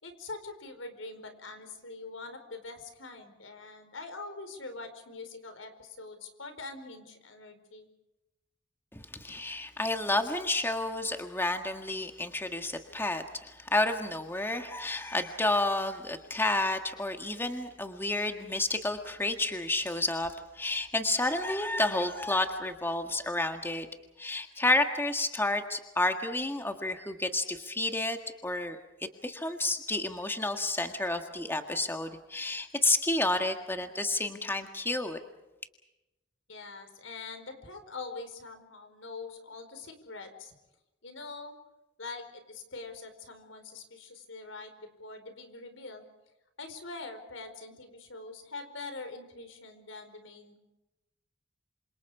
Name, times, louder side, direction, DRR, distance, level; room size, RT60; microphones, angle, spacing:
voice 1, 0.0-7.9 36.5-40.5 41.0-41.5 42.0-46.0 46.6-50.6, left 3 dB, 80° left, 8 dB, 4.7 m, -44 dB
voice 2, 8.9-23.9 24.2-28.2 28.4-28.8 29.2-35.2, left 2 dB, 10° left, 5 dB, 1.7 m, -30 dB
27.5 x 26.5 x 4.9 m, 0.99 s
head